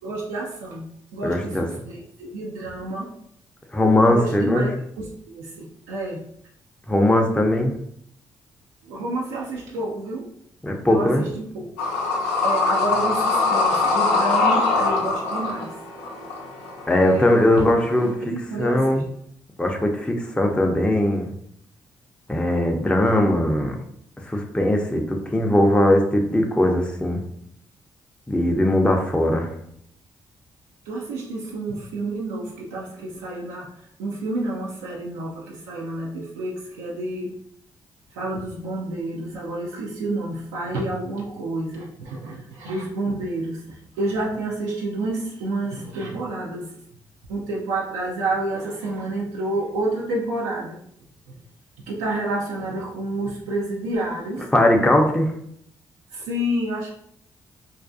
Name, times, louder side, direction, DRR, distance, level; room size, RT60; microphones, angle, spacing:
voice 1, 0.0-0.9 1.1-3.1 4.0-6.2 8.8-10.3 10.8-11.6 12.4-15.7 16.9-17.7 18.3-19.0 30.9-33.7 34.0-37.3 38.1-46.6 47.3-50.8 51.9-54.5 56.1-56.9, right 2 dB, 90° right, -4 dB, 0.4 m, -29 dB
voice 2, 1.2-1.7 3.7-4.6 6.9-7.8 10.6-11.2 16.9-18.3 18.6-19.0 19.6-21.3 22.3-23.8 24.3-27.2 28.3-29.5 54.5-55.3, left 1 dB, 10° left, 2 dB, 0.5 m, -19 dB
sound 1, 11.8-18.1, left 3 dB, 85° left, 0.5 m, -22 dB
2.4 x 2.2 x 2.5 m, 0.70 s
hypercardioid pair, 45°, 11 cm